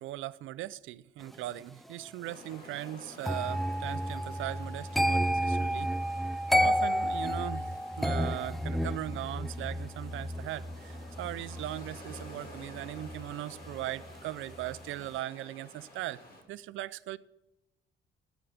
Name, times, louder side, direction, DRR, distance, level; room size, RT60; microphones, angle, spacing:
voice 1, 0.0-5.9 6.6-7.7 8.0-16.2 16.5-17.2, right 14 dB, 80° right, 0.5 m, -39 dB
sound 1, 2.2-16.4, left 1 dB, 50° left, 2.9 m, -52 dB
sound 2, 3.2-14.2 14.5-14.9, equal, ahead, 0.4 m, -32 dB
9.1 x 8.2 x 9.4 m
cardioid pair, 90°, 20 cm